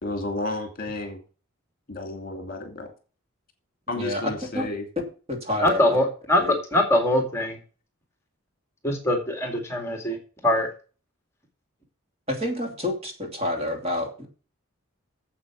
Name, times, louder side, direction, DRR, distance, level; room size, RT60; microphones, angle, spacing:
voice 1, 0.0-1.2 1.9-2.9 3.9-4.8, left 2 dB, 45° left, 5 dB, 2.5 m, -32 dB
voice 2, 3.9-4.7 5.3-6.0 6.4-6.5 12.3-14.3, left 1 dB, 30° right, 3 dB, 2.7 m, -29 dB
voice 3, 5.6-6.4 6.7-7.6 8.8-10.2 10.4-10.7, left 1 dB, 15° left, 3 dB, 2.1 m, -22 dB
8.7 x 7.8 x 5.9 m, 0.37 s
head